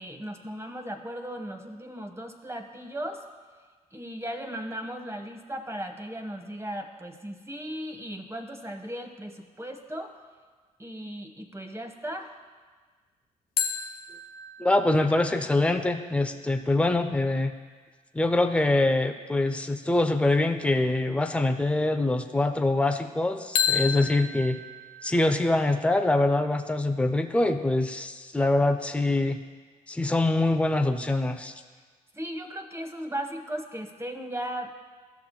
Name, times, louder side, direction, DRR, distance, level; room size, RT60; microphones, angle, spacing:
voice 1, 0.0-3.2 3.9-10.2 10.8-12.3 32.1-34.7, right 1 dB, 15° right, 4 dB, 1.1 m, -36 dB
sound 1, 13.6-17.1 23.6-26.3, left 7 dB, 90° left, 0.5 m, -33 dB
voice 2, 14.6-17.5 18.1-24.6 25.0-29.4 29.9-31.5, left 2 dB, 5° left, 7 dB, 0.6 m, -24 dB
14.0 x 5.8 x 2.3 m, 1.4 s
hypercardioid pair, 45°, 18 cm